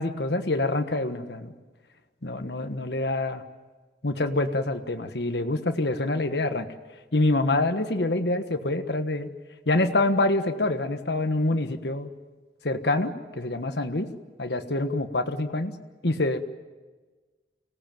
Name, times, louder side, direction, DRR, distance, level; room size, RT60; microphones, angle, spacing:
voice 1, 0.0-1.5 2.2-3.4 4.0-6.7 7.1-9.3 9.7-12.1 12.6-14.1 14.4-15.7 16.0-16.4, left 2 dB, 65° left, 8 dB, 1.4 m, -26 dB
25.0 x 18.0 x 9.1 m, 1.4 s
head